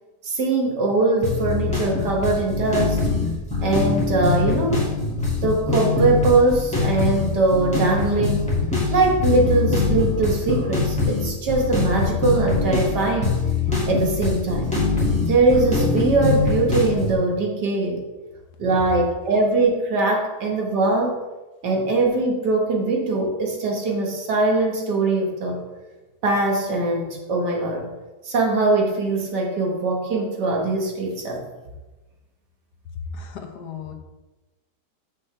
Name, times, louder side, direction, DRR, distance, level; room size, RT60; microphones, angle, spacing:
voice 1, 0.2-3.0 3.6-4.8 5.4-8.5 8.9-13.4 13.9-14.7 15.3-18.0 18.6-21.2 21.6-25.6 26.2-27.9 28.2-31.4, right 3 dB, 80° right, 0 dB, 2.0 m, -21 dB
sound 1, 1.2-17.1, left 4 dB, 5° left, 2.1 m, -23 dB
voice 2, 33.1-33.9, left 5 dB, 75° left, 4 dB, 1.4 m, -36 dB
7.4 x 6.2 x 3.3 m, 1.1 s
omnidirectional pair, 1.8 m